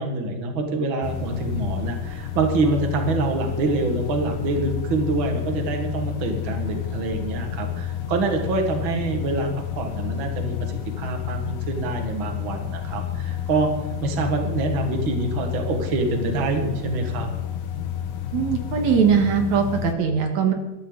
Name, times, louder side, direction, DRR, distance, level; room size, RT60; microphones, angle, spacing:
voice 1, 0.0-9.5 9.8-10.6 11.0-13.7 14.0-17.3, right 3 dB, 45° right, 4 dB, 2.4 m, -25 dB
sound 1, 1.0-19.9, left 10 dB, 80° left, 2.5 m, -30 dB
voice 2, 18.3-20.5, right 6 dB, 70° right, 4 dB, 2.8 m, -20 dB
21.0 x 13.5 x 4.0 m, 1.1 s
omnidirectional pair, 3.3 m